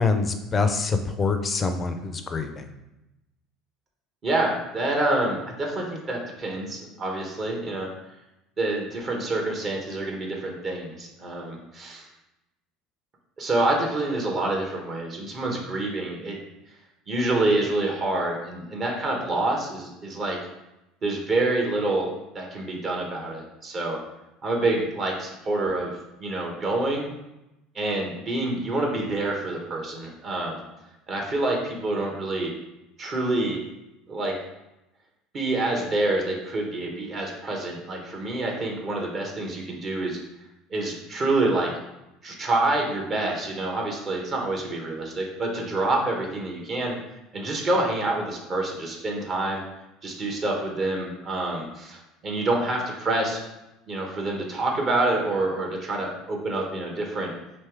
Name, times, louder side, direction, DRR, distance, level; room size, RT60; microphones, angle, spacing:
voice 1, 0.0-2.7, left 4 dB, 30° left, 7 dB, 0.5 m, -25 dB
voice 2, 4.2-7.9 8.6-12.1 13.4-16.4 17.1-20.4 21.0-22.1 22.3-24.0 24.4-25.9 26.2-27.1 27.7-30.6 31.1-32.5 33.0-33.6 34.1-34.3 35.3-40.2 40.7-41.7 42.2-46.9 47.3-49.6 50.0-53.4 53.9-57.3, right 2 dB, 40° right, 0 dB, 1.1 m, -27 dB
3.3 x 3.0 x 4.6 m, 0.92 s
hypercardioid pair, 65°, 0 cm